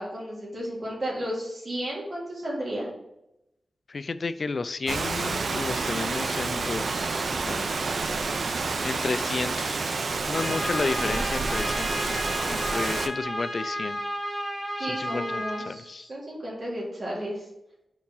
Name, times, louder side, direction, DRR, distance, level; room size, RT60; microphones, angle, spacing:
voice 1, 0.0-2.9 14.8-17.4, equal, 50° right, -5 dB, 2.6 m, -33 dB
voice 2, 3.9-7.7 8.8-9.8 10.3-14.0 14.8-16.1, left 4 dB, 50° left, 13 dB, 0.3 m, -32 dB
Rain, 4.9-13.1, right 4 dB, 65° right, 0.5 m, -29 dB
Trumpet, 10.3-15.7, equal, 10° left, 1.5 m, -32 dB
4.7 x 4.5 x 5.5 m, 0.88 s
wide cardioid pair, 120°, 0 cm